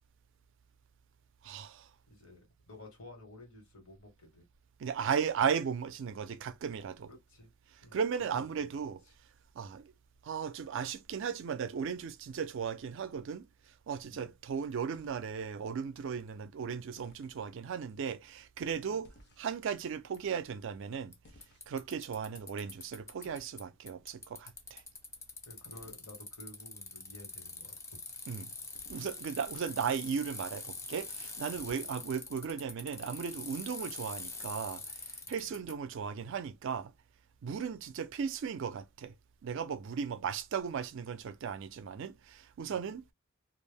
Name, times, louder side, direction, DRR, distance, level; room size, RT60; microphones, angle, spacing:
voice 1, 1.4-1.9 4.8-7.1 7.9-9.0 9.6-9.9 10.2-13.5 13.9-19.1 19.4-21.1 21.7-24.8 28.3-28.5 28.9-36.9 37.4-39.1 39.4-43.1, right 6 dB, 60° right, 0.4 m, -36 dB
voice 2, 2.1-4.4 7.1-7.5 7.8-8.0 8.3-9.1 14.1-14.3 18.7-19.0 25.4-28.0 31.7-31.9 35.2-35.5 42.7-42.9, left 1 dB, 70° left, 1.3 m, -53 dB
sound 1, 13.1-13.7 14.9-15.3 17.0-17.4 19.0-19.7 21.2-21.9 23.2-23.6 25.7-26.0 28.7-29.2 31.5-32.1, left 1 dB, 50° left, 0.6 m, -60 dB
Bicycle, 20.1-20.2 21.1-21.2 21.4-23.6 23.9-35.7, left 3 dB, 15° left, 0.3 m, -44 dB
2.4 x 2.0 x 3.3 m
head